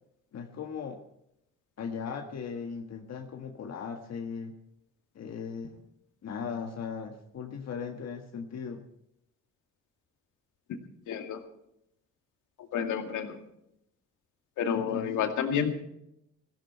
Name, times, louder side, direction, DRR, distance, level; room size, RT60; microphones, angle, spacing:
voice 1, 0.3-1.0 1.8-4.6 5.1-5.8 6.2-8.8 14.7-15.1, left 6 dB, 60° left, 3 dB, 1.6 m, -38 dB
voice 2, 11.1-11.4 12.7-13.4 14.6-15.7, left 7 dB, 80° left, 5 dB, 2.3 m, -29 dB
17.0 x 15.5 x 4.4 m, 0.79 s
cardioid pair, 90°, 30 cm